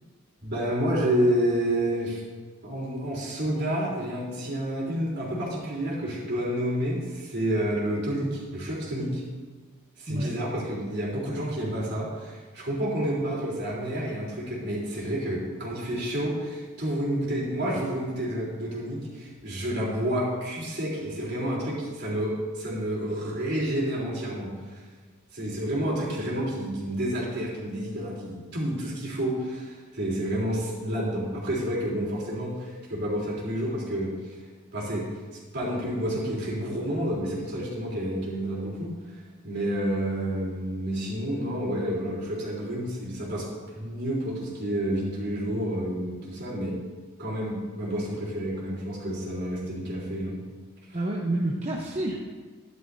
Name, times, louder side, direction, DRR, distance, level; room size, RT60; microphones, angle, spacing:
voice 1, 0.4-2.2 2.6-9.2 10.0-24.8 25.3-34.1 34.7-35.1 35.5-38.9 39.4-43.4 43.8-46.8 47.2-50.4, right 1 dB, 50° right, -6 dB, 3.6 m, -29 dB
voice 2, 50.9-52.2, right 1 dB, 30° right, -2 dB, 0.9 m, -28 dB
13.0 x 11.0 x 2.7 m, 1.4 s
head